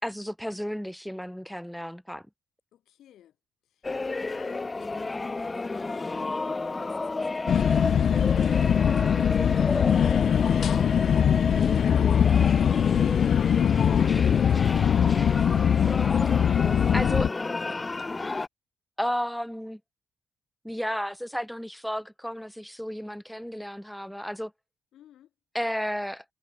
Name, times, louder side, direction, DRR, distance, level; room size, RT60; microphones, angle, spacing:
voice 1, 0.0-2.2 16.9-17.3 19.0-19.8 20.6-24.5 25.5-26.2, equal, ahead, 2.1 m, -32 dB
voice 2, 2.7-3.4 3.6-18.1 24.9-25.3, left 11 dB, 75° left, 4.5 m, -57 dB
sound 1, 3.8-18.5, left 3 dB, 25° left, 1.0 m, -32 dB
sound 2, 7.5-17.3, left 8 dB, 60° left, 0.4 m, -22 dB
cardioid pair, 90°, 0 cm